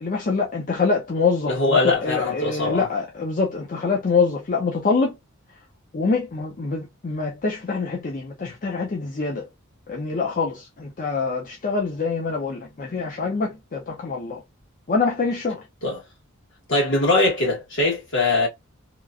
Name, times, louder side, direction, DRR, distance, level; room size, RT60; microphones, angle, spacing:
voice 1, 0.0-5.1 5.9-9.4 9.9-14.4 14.9-15.6, left 4 dB, 40° left, 0.5 m, -25 dB
voice 2, 1.5-2.9 15.8-16.0 16.7-18.5, left 2 dB, 60° left, 1.5 m, -21 dB
2.9 x 2.4 x 2.4 m
head